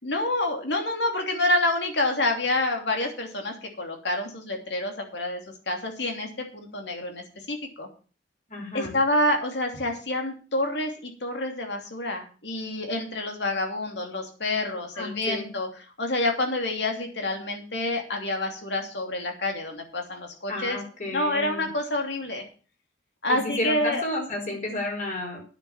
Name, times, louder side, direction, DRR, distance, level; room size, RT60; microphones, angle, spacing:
voice 1, 0.0-7.9 8.7-15.7 16.0-20.8 21.1-22.4 23.2-24.0, left 1 dB, 70° left, 3 dB, 2.9 m, -28 dB
voice 2, 8.5-8.9 14.9-15.5 20.5-21.7 23.3-25.4, left 1 dB, 45° left, 0 dB, 4.8 m, -31 dB
9.6 x 7.1 x 7.3 m, 0.38 s
head